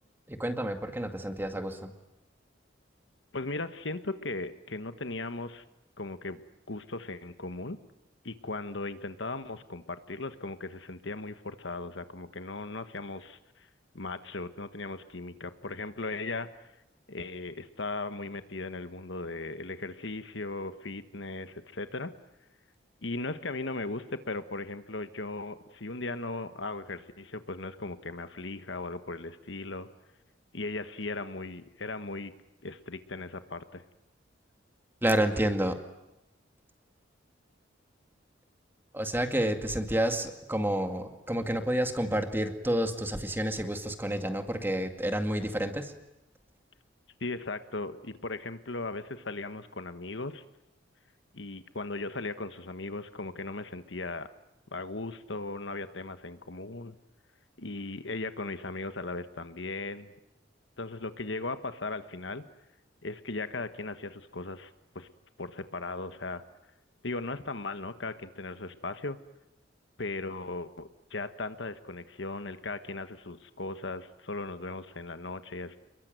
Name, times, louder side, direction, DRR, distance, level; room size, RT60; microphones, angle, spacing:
voice 1, 0.3-1.9 35.0-35.8 38.9-45.9, right 1 dB, 10° right, 6 dB, 2.2 m, -29 dB
voice 2, 3.3-5.6 6.0-6.4 6.7-7.8 8.2-13.7 13.9-16.5 17.1-22.1 23.0-29.9 30.5-32.3 32.6-33.8 47.2-50.4 51.3-54.3 54.7-56.9 57.6-60.1 60.8-62.4 63.0-64.7 64.9-65.1 65.4-66.4 67.0-69.2 70.0-75.8, left 3 dB, 70° left, 10 dB, 1.4 m, -37 dB
28.5 x 22.0 x 9.2 m, 0.91 s
head